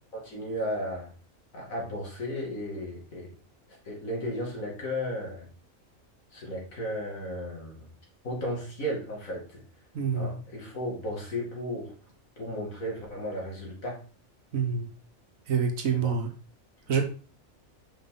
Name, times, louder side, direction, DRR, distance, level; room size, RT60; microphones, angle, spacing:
voice 1, 0.1-1.1 1.5-3.3 3.7-5.5 6.3-7.9 8.2-9.6 10.1-11.9 12.4-14.0 16.0-16.2 16.9-17.0, equal, 75° left, -3 dB, 2.8 m, -34 dB
voice 2, 9.9-10.3 14.5-14.9 15.5-16.3 16.9-17.0, right 6 dB, 75° right, 5 dB, 1.5 m, -26 dB
5.8 x 4.9 x 3.9 m, 0.38 s
omnidirectional pair, 1.4 m